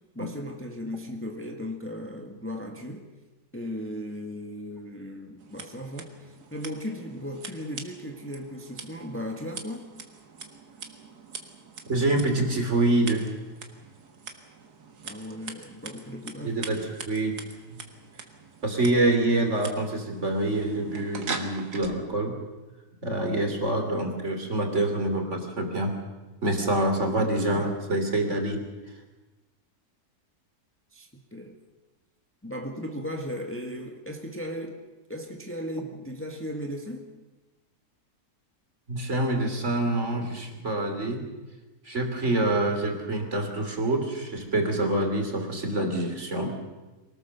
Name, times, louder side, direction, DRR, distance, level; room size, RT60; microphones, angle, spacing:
voice 1, 0.1-3.0 3.5-9.9 15.0-16.6 30.9-31.6 32.4-34.8 35.1-37.1, equal, 10° left, 3 dB, 1.6 m, -36 dB
Scissors, 5.4-21.9, right 5 dB, 90° right, 2.3 m, -43 dB
voice 2, 11.9-13.3 16.4-17.3 18.6-22.4 23.0-26.0 26.4-28.6 38.9-41.2 41.8-46.6, right 2 dB, 50° right, 4 dB, 3.2 m, -26 dB
24.5 x 18.5 x 6.9 m, 1.2 s
omnidirectional pair, 1.6 m